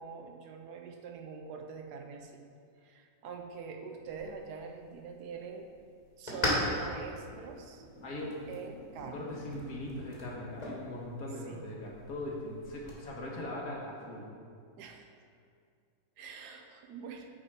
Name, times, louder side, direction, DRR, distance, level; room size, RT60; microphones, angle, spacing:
voice 1, 0.0-2.3 2.8-5.7 6.2-7.8 8.5-9.3 11.5-11.6 14.8-15.1 16.2-17.3, right 5 dB, 90° right, 3 dB, 1.4 m, -44 dB
sound 1, 4.1-13.0, left 1 dB, 25° left, 1.7 m, -40 dB
voice 2, 8.0-8.4 9.1-14.3, left 1 dB, 65° left, -2 dB, 1.8 m, -40 dB
8.7 x 5.1 x 4.8 m, 2.3 s
omnidirectional pair, 1.7 m